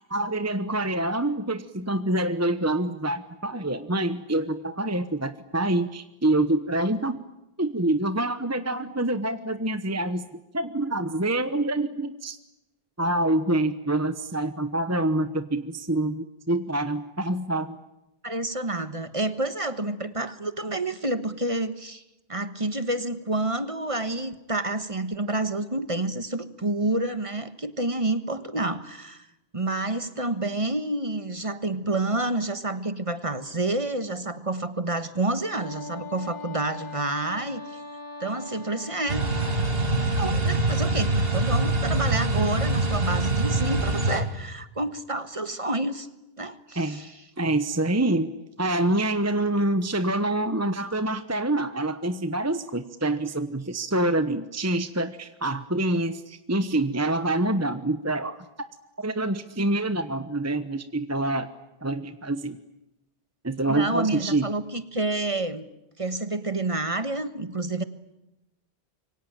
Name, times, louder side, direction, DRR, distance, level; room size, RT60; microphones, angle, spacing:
voice 1, 0.1-7.2 7.6-10.3 10.5-12.4 13.0-17.8 46.8-47.0 47.4-58.4 59.0-61.5 61.8-62.6 63.4-64.5, right 1 dB, 15° right, 11 dB, 1.0 m, -26 dB
voice 2, 18.2-22.0 22.3-29.3 29.5-37.8 38.2-39.2 40.2-46.1 46.4-47.2 63.7-65.6 66.0-67.8, right 2 dB, 30° right, 12 dB, 1.5 m, -29 dB
Wind instrument woodwind instrument, 35.4-40.0, left 3 dB, 55° left, 3.9 m, -41 dB
sound 1, 39.1-44.2, right 2 dB, 65° right, 3.1 m, -24 dB
26.5 x 24.0 x 8.9 m, 0.89 s
omnidirectional pair, 1.1 m